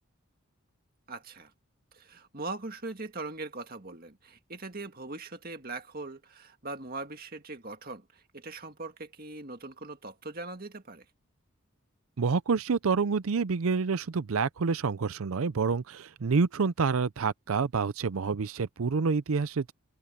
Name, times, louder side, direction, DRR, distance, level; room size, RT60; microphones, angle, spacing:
voice 1, 1.1-1.5 1.9-11.0, right 3 dB, 40° right, 2.0 m, -41 dB
voice 2, 12.2-19.7, right 5 dB, 75° right, 0.5 m, -28 dB
open air
head